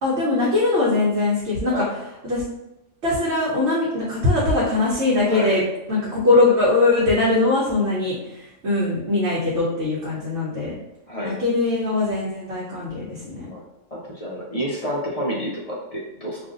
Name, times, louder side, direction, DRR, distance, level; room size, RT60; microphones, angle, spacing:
voice 1, 0.0-1.8 2.2-2.4 3.0-5.6 5.9-10.7 11.2-13.5, left 2 dB, 60° right, -7 dB, 1.0 m, -21 dB
voice 2, 5.2-5.6 11.1-11.4 13.4-13.7 13.9-16.4, equal, 45° left, -4 dB, 0.4 m, -29 dB
2.6 x 2.5 x 3.7 m, 0.91 s
omnidirectional pair, 1.3 m